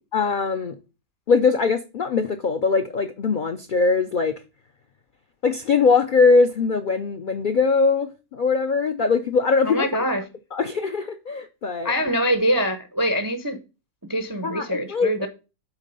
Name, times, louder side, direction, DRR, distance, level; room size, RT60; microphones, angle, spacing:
voice 1, 0.1-0.8 1.3-4.4 5.4-9.9 10.5-11.9 14.4-15.1, left 4 dB, 60° left, 0.5 m, -21 dB
voice 2, 9.6-10.2 11.8-13.6 14.1-15.3, equal, 25° right, 0.4 m, -24 dB
8.2 x 4.1 x 5.3 m
omnidirectional pair, 1.6 m